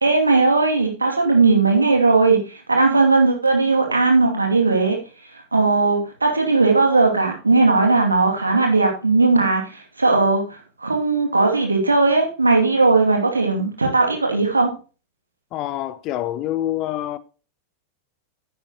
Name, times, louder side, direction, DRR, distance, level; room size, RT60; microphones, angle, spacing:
voice 1, 0.0-5.0 5.5-10.4 10.8-14.7, right 3 dB, 80° right, 2.5 m, -18 dB
voice 2, 15.5-17.2, left 13 dB, 40° left, 0.8 m, -26 dB
10.0 x 9.3 x 3.0 m
figure-of-eight pair, 90°, 0 cm